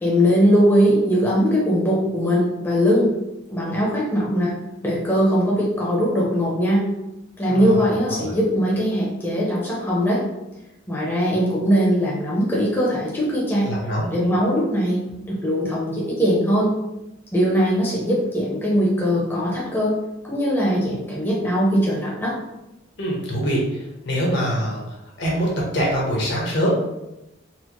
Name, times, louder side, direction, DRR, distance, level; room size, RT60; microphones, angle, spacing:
voice 1, 0.0-3.1 3.5-4.5 4.8-6.9 7.4-10.2 10.9-13.7 14.1-15.0 15.3-16.7 17.3-19.9 20.2-22.4, equal, 10° left, -5 dB, 0.6 m, -20 dB
voice 2, 7.5-8.4 13.6-14.1 23.0-26.8, equal, 60° left, -3 dB, 1.0 m, -24 dB
4.2 x 2.1 x 3.0 m, 0.93 s
head